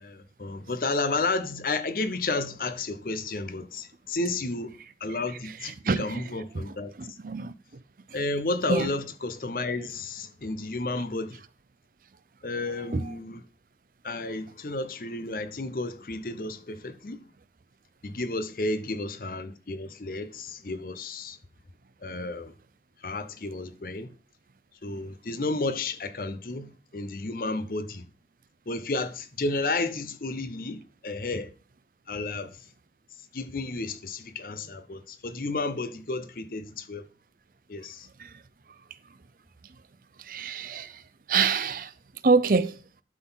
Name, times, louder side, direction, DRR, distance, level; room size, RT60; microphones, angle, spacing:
voice 1, 0.0-4.7 5.0-6.9 8.1-11.4 12.4-13.4 14.0-17.2 18.0-21.4 22.0-22.5 23.0-24.1 24.8-28.0 28.7-31.5 32.1-32.5 33.3-37.0 37.7-38.1, left 2 dB, 50° left, 0.7 m, -32 dB
voice 2, 40.3-40.8 41.3-41.8 42.2-42.7, right 4 dB, 50° right, 0.5 m, -23 dB
12.0 x 4.0 x 5.6 m
head